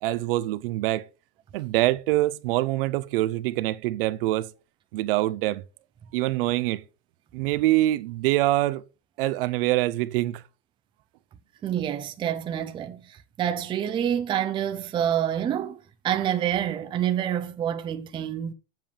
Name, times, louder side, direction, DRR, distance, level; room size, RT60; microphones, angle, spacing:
voice 1, 0.0-1.0 1.5-4.5 4.9-5.6 6.1-6.8 7.3-8.8 9.2-10.4, right 16 dB, 55° right, 0.6 m, -24 dB
voice 2, 11.6-15.8 16.0-18.5, right 10 dB, 15° right, 0.6 m, -27 dB
7.5 x 7.4 x 4.9 m
supercardioid pair, 155°, 33 cm